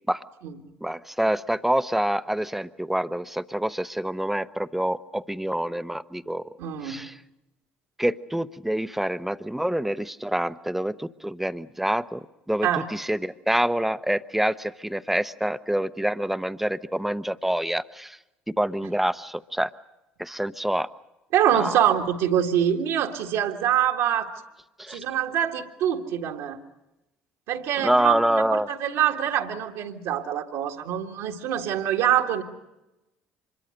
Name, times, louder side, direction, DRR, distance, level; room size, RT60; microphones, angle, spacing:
voice 1, 0.8-6.4 6.8-7.1 8.0-12.2 12.5-18.2 18.5-19.7 20.2-20.9 21.5-21.8 24.8-25.0 27.8-28.7, right 1 dB, 5° right, 14 dB, 0.8 m, -26 dB
voice 2, 6.6-7.0 12.6-12.9 21.3-24.4 24.9-26.6 27.5-32.4, right 10 dB, 70° right, 2 dB, 1.8 m, -25 dB
25.5 x 22.5 x 6.6 m, 0.97 s
hypercardioid pair, 60°, 5 cm